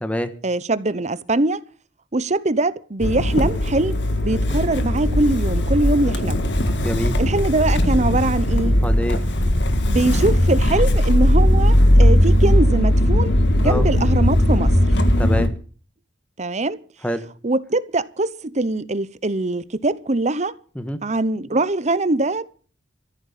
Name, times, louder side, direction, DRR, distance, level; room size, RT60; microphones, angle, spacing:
voice 1, 0.4-1.6 2.1-4.0 4.2-6.4 7.2-8.7 9.9-14.7 16.4-16.8 17.4-20.5 21.0-22.4, right 2 dB, 40° right, 0.9 m, -22 dB
Motor vehicle (road) / Engine starting, 3.0-15.5, left 1 dB, 65° left, 1.8 m, -18 dB
voice 2, 6.8-7.1 8.8-9.3 13.6-13.8 15.2-15.5 17.0-17.2 20.7-21.0, equal, 5° left, 1.4 m, -25 dB
14.5 x 9.0 x 7.4 m
head